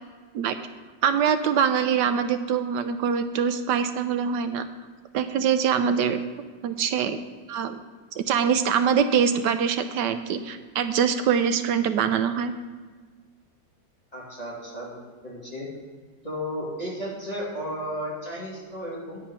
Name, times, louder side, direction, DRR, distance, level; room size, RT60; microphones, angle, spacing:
voice 1, 1.0-4.6 5.1-6.2 6.6-7.2 7.5-7.8 8.2-12.5, right 7 dB, 75° right, 9 dB, 1.1 m, -24 dB
voice 2, 14.1-15.7 16.2-19.2, equal, 20° left, -7 dB, 2.5 m, -34 dB
9.5 x 7.4 x 5.6 m, 1.5 s
omnidirectional pair, 2.0 m